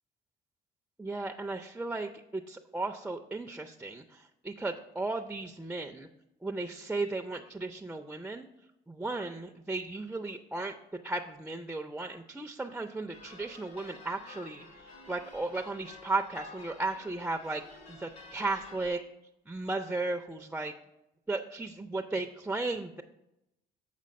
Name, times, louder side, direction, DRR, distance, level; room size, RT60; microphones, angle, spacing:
voice 1, 1.0-6.1 6.4-8.5 8.9-10.8 11.0-19.0 19.5-20.7 21.3-23.0, right 3 dB, 10° right, 4 dB, 0.4 m, -35 dB
sound 1, 13.1-18.9, left 3 dB, 55° left, 2.2 m, -51 dB
7.5 x 5.2 x 5.2 m, 0.87 s
cardioid pair, 110°, 17 cm